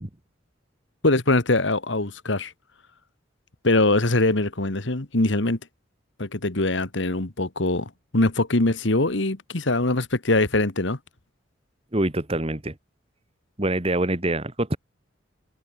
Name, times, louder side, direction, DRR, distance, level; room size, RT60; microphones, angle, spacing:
voice 1, 1.0-2.5 3.6-5.6 6.2-11.0, left 2 dB, 70° left, 1.8 m, -22 dB
voice 2, 11.9-12.8 13.6-14.8, right 1 dB, 30° right, 1.8 m, -25 dB
head